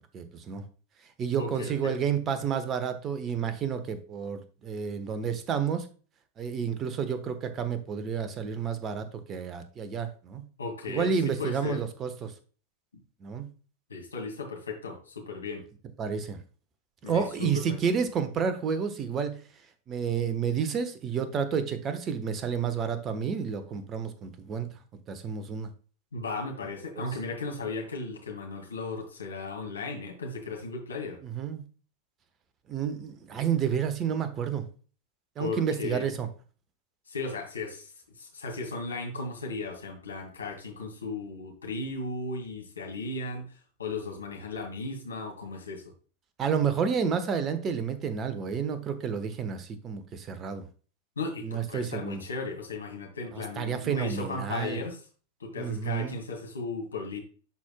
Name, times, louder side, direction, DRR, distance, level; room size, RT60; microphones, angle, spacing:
voice 1, 0.1-0.6 1.2-5.9 6.4-10.4 10.9-12.3 13.2-13.5 16.0-16.4 17.0-19.3 19.9-24.7 25.1-25.7 27.0-27.1 31.2-31.6 32.7-34.6 35.4-36.3 46.4-50.7 51.4-52.2 53.3-54.8 55.6-56.2, right 7 dB, 30° right, 11 dB, 1.1 m, -30 dB
voice 2, 1.4-2.0 10.6-11.8 12.9-13.0 13.9-15.6 17.0-17.8 26.1-31.2 35.4-36.1 37.1-45.8 51.2-55.1 55.4-57.2, left 3 dB, 75° left, 1 dB, 2.1 m, -36 dB
11.5 x 4.5 x 2.2 m, 0.38 s
figure-of-eight pair, 90°, 0 cm